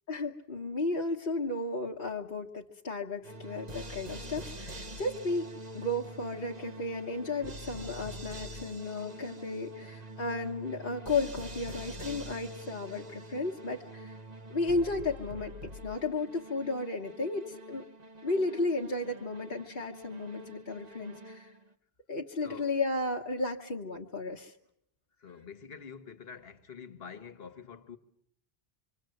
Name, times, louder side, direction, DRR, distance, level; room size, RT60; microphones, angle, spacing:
voice 1, 0.1-5.5 5.7-14.2 14.5-17.8 18.2-21.5 22.1-24.5, left 2 dB, 55° left, 1.5 m, -34 dB
sound 1, 3.2-21.7, right 1 dB, 40° right, 1.3 m, -45 dB
voice 2, 22.4-22.7 25.2-28.0, left 6 dB, 75° left, 1.6 m, -47 dB
26.5 x 25.0 x 7.8 m
omnidirectional pair, 1.0 m